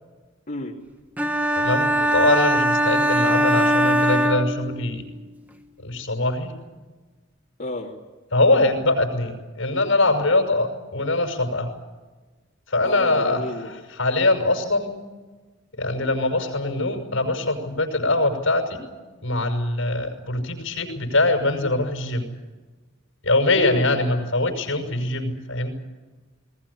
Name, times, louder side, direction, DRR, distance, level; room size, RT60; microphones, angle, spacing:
sound 1, 1.2-5.1, equal, 10° right, 1.5 m, -21 dB
voice 1, 1.6-5.1 5.8-6.5 8.3-11.7 12.7-14.9 15.8-18.8 19.2-22.3 23.2-25.7, left 2 dB, 85° left, 4 dB, 6.0 m, -23 dB
voice 2, 7.6-8.0 12.8-13.7 23.6-24.0, left 1 dB, 45° left, -4 dB, 2.9 m, -31 dB
20.5 x 20.0 x 10.0 m, 1.3 s
head